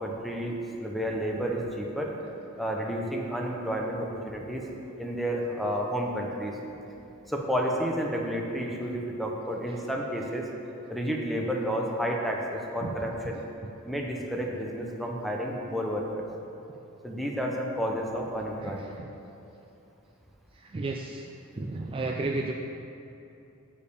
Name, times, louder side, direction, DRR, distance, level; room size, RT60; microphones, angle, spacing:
voice 1, 0.0-2.2 2.6-4.6 5.0-6.6 7.3-10.5 10.9-13.4 13.9-16.3 17.0-19.0, equal, ahead, -1 dB, 0.8 m, -31 dB
voice 2, 20.7-21.2 21.5-22.5, right 2 dB, 25° right, 1 dB, 0.3 m, -31 dB
6.6 x 5.3 x 6.8 m, 2.8 s
head